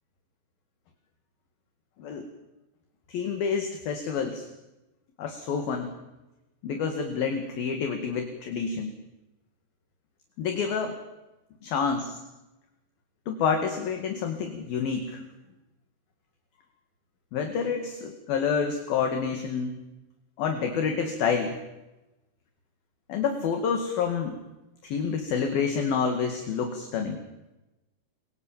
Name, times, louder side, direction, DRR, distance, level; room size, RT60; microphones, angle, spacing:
voice 1, 3.1-4.5 5.2-5.9 6.6-8.9 10.4-11.0 11.6-12.2 13.3-15.2 17.3-19.8 20.4-21.6 23.1-24.4 24.8-27.2, left 6 dB, 60° left, 5 dB, 3.6 m, -28 dB
28.5 x 23.0 x 7.3 m, 1.0 s
omnidirectional pair, 5.3 m